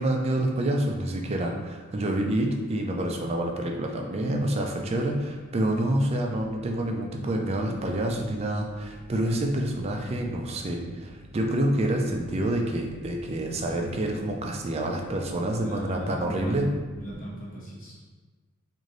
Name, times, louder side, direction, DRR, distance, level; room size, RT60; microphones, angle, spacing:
voice 1, 0.0-16.7, right 1 dB, 30° right, 1 dB, 0.4 m, -27 dB
sound 1, 3.9-17.2, equal, 85° right, 1.0 m, -48 dB
voice 2, 15.5-18.0, equal, 40° left, -7 dB, 1.0 m, -37 dB
3.2 x 2.6 x 3.8 m, 1.3 s
head